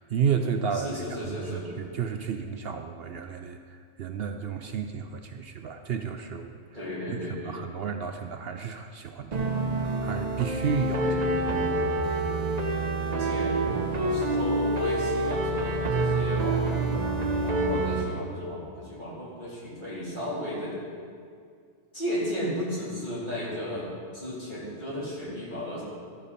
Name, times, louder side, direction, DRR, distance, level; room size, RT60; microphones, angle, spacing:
voice 1, 0.0-0.9 1.3-3.6 4.0-6.6 7.3-11.1, right 7 dB, 65° right, 6 dB, 0.8 m, -32 dB
voice 2, 0.7-1.7 6.7-7.6 11.0-11.3 13.1-16.9 17.4-20.8 21.9-23.9 24.1-25.8, left 1 dB, 45° left, -7 dB, 3.7 m, -34 dB
sound 1, 9.3-18.1, right 2 dB, 40° right, 1.0 m, -27 dB
13.0 x 12.0 x 4.2 m, 2.2 s
omnidirectional pair, 1.2 m